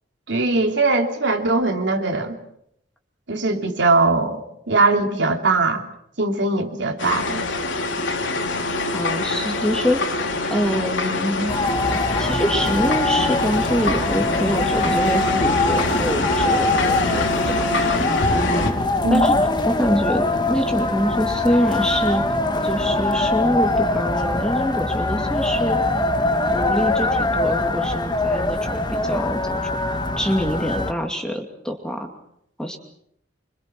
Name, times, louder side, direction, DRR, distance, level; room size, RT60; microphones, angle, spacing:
voice 1, 0.3-2.4 3.3-5.8 6.2-7.4 19.0-19.4, right 3 dB, 70° right, 3 dB, 3.0 m, -20 dB
sound 1, 7.0-18.7, left 2 dB, 85° left, 3.5 m, -25 dB
voice 2, 8.9-10.1 10.5-11.5 12.2-17.3 17.7-18.0 18.3-18.8 19.1-22.2 22.6-25.8 26.5-29.7 30.2-32.1 32.6-32.8, equal, 5° left, 3 dB, 2.4 m, -25 dB
sound 2, 11.5-30.9, left 2 dB, 25° left, 1.4 m, -22 dB
27.0 x 25.0 x 6.1 m, 0.73 s
head